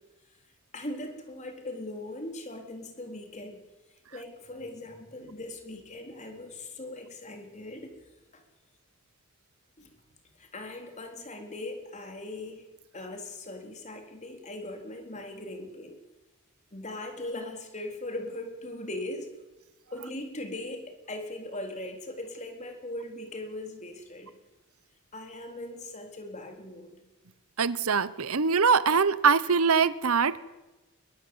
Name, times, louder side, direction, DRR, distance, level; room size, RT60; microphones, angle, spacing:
voice 1, 0.7-3.6 4.1-7.9 8.3-8.4 9.8-9.9 10.4-12.7 12.9-15.9 16.7-19.3 19.9-24.3 25.1-27.0, left 1 dB, 35° left, 4 dB, 3.9 m, -39 dB
voice 2, 27.6-30.4, right 5 dB, 80° right, 16 dB, 1.0 m, -23 dB
22.5 x 21.0 x 8.0 m, 1.1 s
head